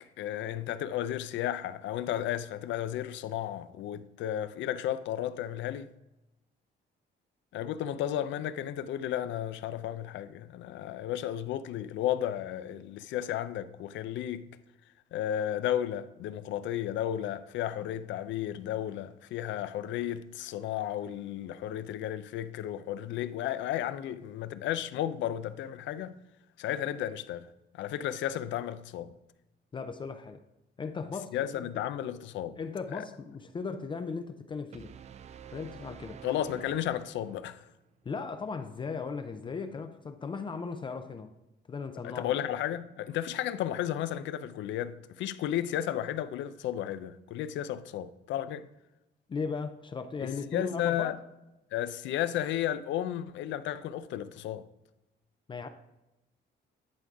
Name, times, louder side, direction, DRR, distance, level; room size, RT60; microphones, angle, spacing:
voice 1, 0.2-5.9 7.5-14.5 15.1-26.2 26.6-27.5 27.8-29.1 31.3-32.6 32.9-33.0 36.2-37.6 42.0-48.7 50.2-51.1 51.7-54.6, left 11 dB, 85° left, 0.5 m, -33 dB
voice 2, 29.7-30.4 30.8-31.6 32.6-34.9 35.5-36.2 38.0-41.3 41.7-42.4 49.3-51.2 55.5-55.7, left 5 dB, 25° left, 0.4 m, -37 dB
sound 1, 34.7-37.6, right 8 dB, 40° right, 0.3 m, -48 dB
10.5 x 3.8 x 4.7 m
cardioid pair, 150°, 19 cm